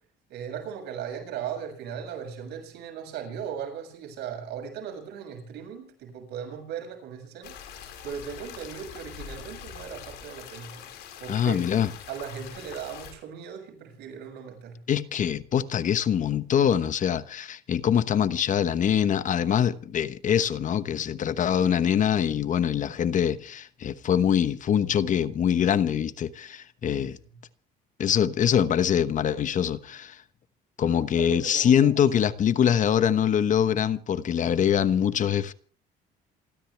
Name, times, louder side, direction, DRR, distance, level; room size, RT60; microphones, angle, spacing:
voice 1, 0.3-7.8 8.0-10.8 11.2-11.6 12.1-14.8 26.8-27.1 31.1-32.0, right 8 dB, 80° right, 7.3 m, -38 dB
sound 1, 7.4-13.1, left 8 dB, 85° left, 5.1 m, -43 dB
voice 2, 11.3-11.9 14.9-27.2 28.0-30.2 30.8-35.5, left 9 dB, 50° left, 1.1 m, -24 dB
27.5 x 14.0 x 3.4 m
cardioid pair, 110°, 17 cm